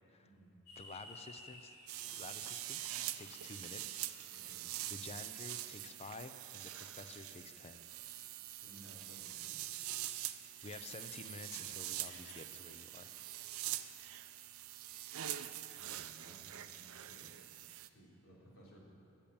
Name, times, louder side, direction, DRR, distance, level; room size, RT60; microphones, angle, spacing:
voice 1, 0.2-0.6 4.3-4.7 8.6-9.7 15.7-17.3 17.8-18.8, right 1 dB, 70° left, -5 dB, 3.4 m, -59 dB
sound 1, 0.7-4.8, left 1 dB, 90° left, 3.4 m, -57 dB
voice 2, 0.8-1.8 2.1-2.8 3.1-4.5 4.8-7.9 10.6-13.2, left 3 dB, 30° left, 9 dB, 0.6 m, -51 dB
sound 2, 1.9-17.9, right 13 dB, 70° right, 0.5 m, -44 dB
sound 3, 7.4-12.6, left 2 dB, 45° left, 2.4 m, -63 dB
14.0 x 7.3 x 8.7 m, 2.7 s
head